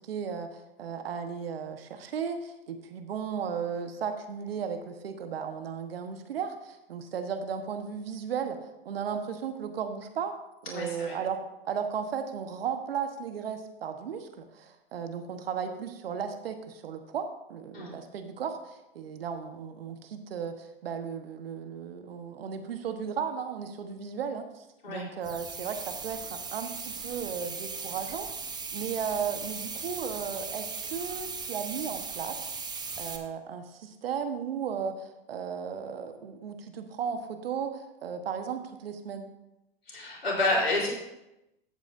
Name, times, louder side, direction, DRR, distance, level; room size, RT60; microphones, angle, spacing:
voice 1, 0.0-10.4 10.7-11.4 11.6-28.3 28.7-32.5 33.0-39.3, right 7 dB, 75° right, 7 dB, 1.2 m, -35 dB
voice 2, 10.7-11.2 17.7-17.9 24.8-25.1 39.9-40.9, left 2 dB, 85° left, -3 dB, 3.8 m, -29 dB
sound 1, 25.2-33.2, right 5 dB, 15° right, 1.0 m, -38 dB
14.5 x 8.4 x 2.6 m, 0.92 s
hypercardioid pair, 95°, 30 cm